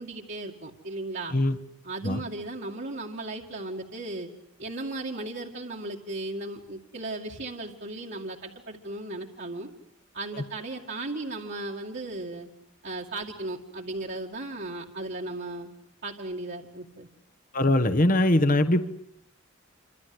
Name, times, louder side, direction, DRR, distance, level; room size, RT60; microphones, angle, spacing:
voice 1, 0.0-1.4 1.8-4.3 4.6-9.7 10.1-12.5 12.8-15.7 16.0-17.1, right 2 dB, 55° right, -2 dB, 2.3 m, -36 dB
voice 2, 17.5-18.8, left 1 dB, 40° left, 10 dB, 1.3 m, -22 dB
28.0 x 26.0 x 8.0 m, 0.70 s
head